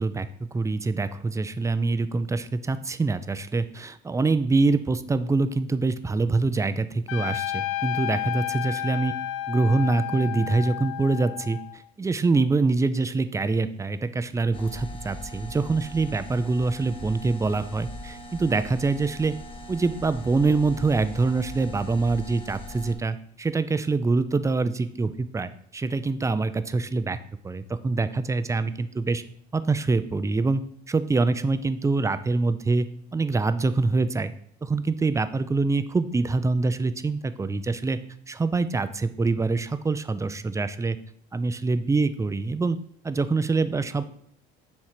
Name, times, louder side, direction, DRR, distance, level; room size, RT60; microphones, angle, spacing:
voice 1, 0.0-9.1 9.5-19.3 19.7-27.2 27.4-29.2 29.5-30.6 30.9-32.9 33.1-34.3 34.6-38.0 38.3-41.0 41.3-42.8 43.0-44.0, right 3 dB, 15° right, 13 dB, 0.5 m, -25 dB
Trumpet, 7.1-11.8, left 13 dB, 75° left, 0.5 m, -31 dB
sound 1, 14.5-22.9, left 1 dB, 25° left, 1.0 m, -40 dB
7.4 x 3.2 x 5.7 m, 0.63 s
supercardioid pair, 85°, 21 cm